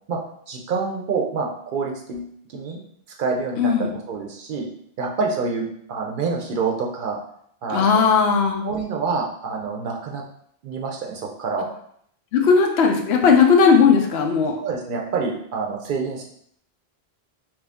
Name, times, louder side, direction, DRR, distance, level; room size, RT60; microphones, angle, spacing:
voice 1, 0.5-2.8 3.2-4.7 5.0-7.2 7.6-8.1 8.6-10.2 10.6-11.7 14.6-16.3, right 4 dB, 60° right, 0 dB, 0.6 m, -27 dB
voice 2, 3.6-3.9 7.7-8.7 12.3-14.6, left 5 dB, 80° left, 3 dB, 0.8 m, -17 dB
2.9 x 2.5 x 3.4 m, 0.68 s
omnidirectional pair, 1.1 m